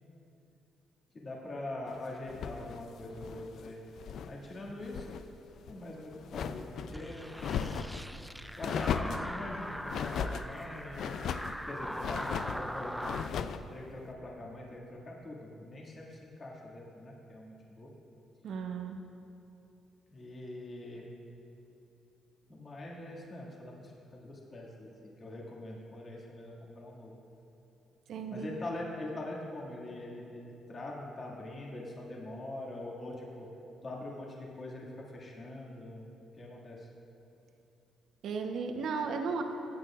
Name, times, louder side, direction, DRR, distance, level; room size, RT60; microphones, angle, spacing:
voice 1, 1.1-3.8 4.2-5.3 5.7-7.3 8.6-11.1 11.6-13.1 13.7-17.9 20.1-21.1 22.5-27.1 28.3-33.5 33.8-36.1 36.4-36.9, left 1 dB, 40° left, -4 dB, 2.1 m, -43 dB
sound 1, 2.3-4.4 4.7-5.2 5.6-6.9 7.4-8.0 8.6-9.3 9.9-10.5 10.9-11.6 12.0-12.6 13.0-13.6, left 7 dB, 70° left, 0.4 m, -36 dB
sound 2, 6.9-13.3, equal, ahead, 0.4 m, -41 dB
voice 2, 18.4-19.0 28.1-28.6 38.2-39.4, right 5 dB, 70° right, 4 dB, 1.0 m, -35 dB
20.5 x 8.9 x 2.5 m, 2.9 s
cardioid pair, 90°, 0 cm